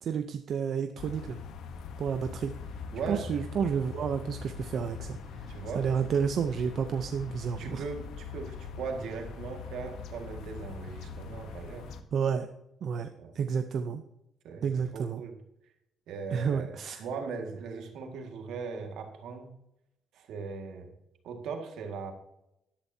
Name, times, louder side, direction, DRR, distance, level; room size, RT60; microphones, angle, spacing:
voice 1, 0.0-1.4 2.0-2.5 3.1-5.5 5.7-7.8 12.1-12.5 12.8-13.1 13.3-14.0 14.6-15.2 16.3-17.0, right 7 dB, 65° right, 7 dB, 0.7 m, -30 dB
sound 1, 1.0-12.0, left 5 dB, 80° left, 1.0 m, -42 dB
voice 2, 2.9-3.2 5.5-5.9 7.6-11.9 13.2-13.3 14.4-14.6 14.9-15.4 16.1-19.5 20.1-20.9 21.2-22.1, right 5 dB, 85° right, 4 dB, 1.9 m, -39 dB
13.0 x 11.5 x 2.8 m, 0.83 s
cardioid pair, 90°, 0 cm